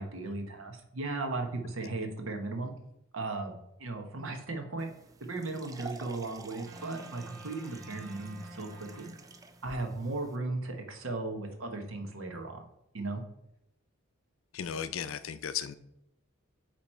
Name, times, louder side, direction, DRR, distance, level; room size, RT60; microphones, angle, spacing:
voice 1, 0.0-2.7 3.1-4.9 5.2-9.1 9.6-12.6 12.9-13.2, right 2 dB, 80° right, 5 dB, 1.1 m, -36 dB
sound 1, 4.8-10.4, right 3 dB, 15° right, 0.4 m, -50 dB
sound 2, 6.7-9.9, right 1 dB, 60° right, 1.9 m, -50 dB
voice 2, 14.5-15.7, left 8 dB, 75° left, 13 dB, 0.5 m, -35 dB
8.5 x 3.1 x 4.4 m, 0.81 s
head